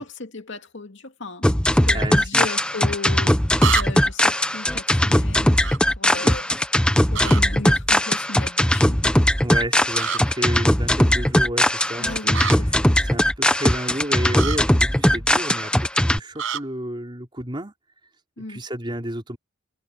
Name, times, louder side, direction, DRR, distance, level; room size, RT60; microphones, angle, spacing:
voice 1, 0.0-3.4 3.7-6.5 7.0-9.1 12.0-12.9 18.4-18.6, left 3 dB, 60° left, 2.7 m, -36 dB
sound 1, 1.4-16.2, left 1 dB, 5° left, 0.8 m, -19 dB
voice 2, 1.9-2.5 6.2-6.4 9.4-17.7 18.5-19.4, right 1 dB, 25° right, 4.1 m, -31 dB
sound 2, 2.5-2.6 3.6-4.1 5.6-5.8 7.1-7.4 9.9-10.2 12.3-12.6 14.3-14.6 16.4-16.6, right 6 dB, 65° right, 7.3 m, -26 dB
head